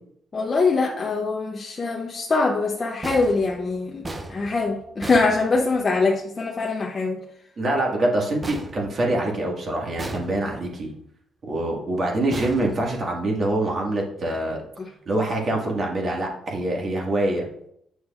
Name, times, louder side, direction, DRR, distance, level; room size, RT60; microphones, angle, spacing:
voice 1, 0.3-7.2 14.8-14.9, left 3 dB, 30° left, 0 dB, 0.8 m, -23 dB
sound 1, 3.0-6.1 8.4-9.5 10.0-10.8 12.3-13.4, right 2 dB, 20° right, 0.7 m, -37 dB
voice 2, 7.6-10.9 11.5-14.6 15.1-17.5, right 1 dB, 45° right, -1 dB, 1.9 m, -25 dB
7.9 x 6.1 x 2.5 m, 0.74 s
cardioid pair, 90°, 0 cm